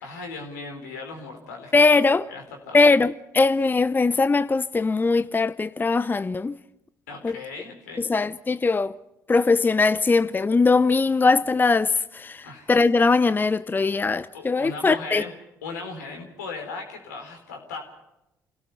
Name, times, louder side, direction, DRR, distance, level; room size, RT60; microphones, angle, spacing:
voice 1, 0.0-1.7 2.3-2.8 7.1-8.1 12.4-12.7 14.3-15.3 15.6-17.8, left 4 dB, 80° left, 4.1 m, -37 dB
voice 2, 1.7-2.3 2.7-6.6 7.2-7.4 8.0-8.9 9.3-15.2, left 3 dB, 20° left, 0.7 m, -21 dB
28.0 x 17.5 x 5.6 m
figure-of-eight pair, 50°, 9 cm